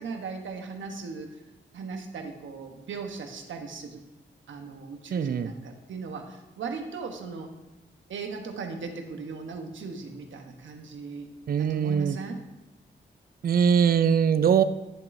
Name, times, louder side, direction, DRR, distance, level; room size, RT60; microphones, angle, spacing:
voice 1, 0.0-4.0 4.5-7.5 8.1-12.4, right 4 dB, 80° right, 4 dB, 1.0 m, -38 dB
voice 2, 5.1-5.5 11.5-12.2 13.4-14.6, right 7 dB, 50° right, 12 dB, 0.4 m, -22 dB
10.0 x 7.5 x 2.6 m, 1.1 s
cardioid pair, 55°, 19 cm